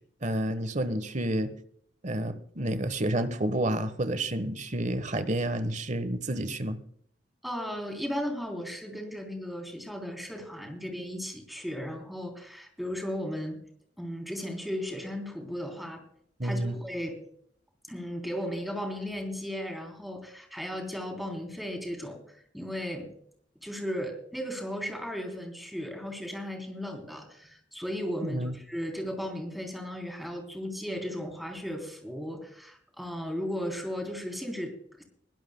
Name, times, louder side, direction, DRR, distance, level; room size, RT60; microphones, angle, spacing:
voice 1, 0.2-1.5 2.0-6.8 16.4-16.7 28.2-28.5, right 1 dB, 40° right, 12 dB, 1.2 m, -30 dB
voice 2, 7.4-13.6 14.0-16.0 16.4-17.2 17.9-23.1 23.6-35.0, equal, ahead, 2 dB, 3.3 m, -36 dB
21.5 x 16.5 x 2.2 m, 0.65 s
head